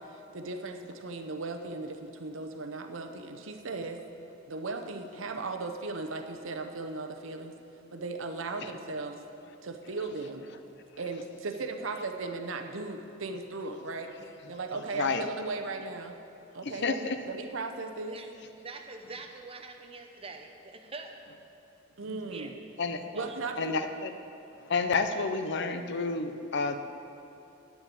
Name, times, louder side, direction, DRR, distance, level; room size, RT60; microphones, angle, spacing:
voice 1, 0.0-4.0 4.5-7.5 7.9-9.2 9.6-10.5 11.0-14.1 14.4-16.2 16.5-18.2 22.0-22.5 23.1-23.8, right 3 dB, 75° right, 6 dB, 0.8 m, -37 dB
voice 2, 16.6-17.2 22.1-22.2 22.8-23.0 23.6-24.1 24.6-26.8, left 4 dB, 60° left, 9 dB, 0.7 m, -30 dB
voice 3, 18.6-21.2 22.3-22.5 23.1-23.4, right 3 dB, 30° right, 4 dB, 0.9 m, -44 dB
9.5 x 7.2 x 8.5 m, 2.9 s
head